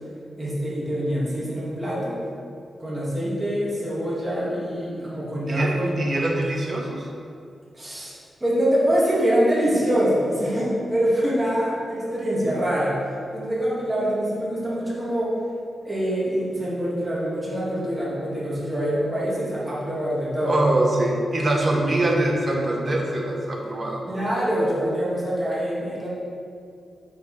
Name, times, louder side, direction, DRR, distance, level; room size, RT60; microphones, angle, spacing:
voice 1, 0.4-2.2 2.8-5.9 7.7-8.1 8.4-12.9 13.3-15.3 15.8-20.6 24.1-26.1, equal, 15° right, -7 dB, 1.7 m, -24 dB
voice 2, 5.5-7.1 20.5-24.1, right 1 dB, 30° right, 0 dB, 1.0 m, -23 dB
7.8 x 5.9 x 3.2 m, 2.3 s
wide cardioid pair, 155°, 0 cm